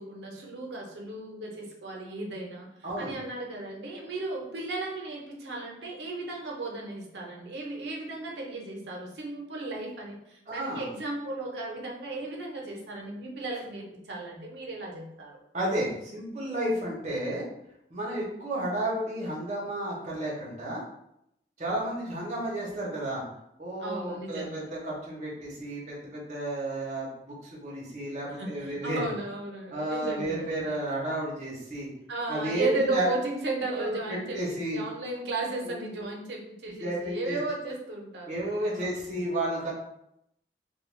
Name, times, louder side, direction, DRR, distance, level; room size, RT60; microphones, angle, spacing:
voice 1, 0.0-15.3 23.8-24.7 28.3-30.7 32.1-38.4 38.8-39.3, right 2 dB, 85° right, -1 dB, 0.6 m, -35 dB
voice 2, 10.5-10.8 15.5-17.4 17.9-20.8 21.6-23.2 23.6-29.0 29.7-31.9 32.3-33.1 33.7-34.8 35.6-36.0 36.8-37.4 38.3-39.7, right 1 dB, 40° right, -4 dB, 0.7 m, -32 dB
2.3 x 2.2 x 3.1 m, 0.80 s
head